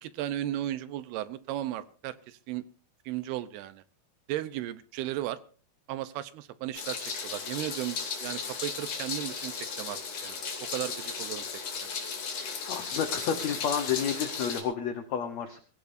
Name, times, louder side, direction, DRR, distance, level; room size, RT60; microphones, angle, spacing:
voice 1, 0.0-2.6 3.1-3.8 4.3-5.4 5.9-11.4 11.7-11.9, right 13 dB, 80° right, 14 dB, 2.7 m, -35 dB
Meow, 6.7-14.6, left 5 dB, 50° left, 4.0 m, -35 dB
voice 2, 12.7-15.6, left 7 dB, 85° left, 7 dB, 1.5 m, -30 dB
24.0 x 16.0 x 2.6 m, 0.39 s
omnidirectional pair, 4.8 m